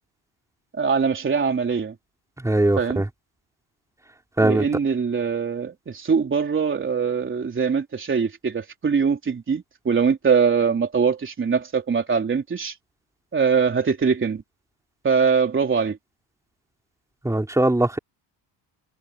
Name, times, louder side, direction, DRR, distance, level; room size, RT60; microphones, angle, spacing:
voice 1, 0.8-2.0 2.8-3.0 4.4-12.7 13.3-14.4 15.0-16.0, right 6 dB, 25° right, 3.8 m, -22 dB
voice 2, 2.4-3.1 4.4-4.6 17.2-18.0, right 1 dB, 5° right, 3.7 m, -20 dB
cardioid pair, 145°, 46 cm